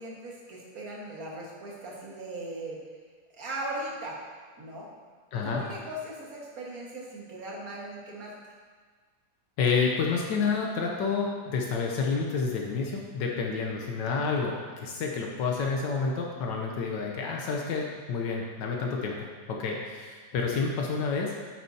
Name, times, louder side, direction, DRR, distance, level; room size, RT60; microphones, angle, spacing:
voice 1, 0.0-2.8 3.3-4.2 4.6-4.9 5.4-8.3, right 1 dB, 55° right, -4 dB, 2.0 m, -38 dB
voice 2, 5.3-5.6 9.6-21.3, left 5 dB, 80° left, 0 dB, 1.5 m, -29 dB
9.1 x 8.8 x 2.8 m, 1.5 s
omnidirectional pair, 1.9 m